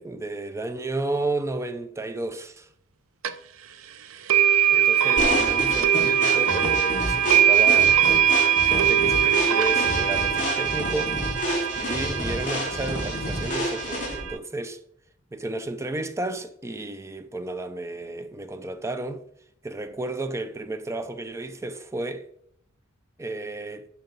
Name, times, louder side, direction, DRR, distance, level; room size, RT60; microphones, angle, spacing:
voice 1, 0.0-2.7 4.7-8.0 8.6-11.2 11.7-14.8 15.3-19.2 19.6-22.3 23.2-23.9, right 2 dB, 15° right, 0.4 m, -32 dB
sound 1, 3.2-3.3 4.3-14.4, right 9 dB, 85° right, 0.6 m, -22 dB
sound 2, 5.2-14.3, left 1 dB, 40° left, 4.0 m, -30 dB
10.5 x 5.7 x 3.9 m
head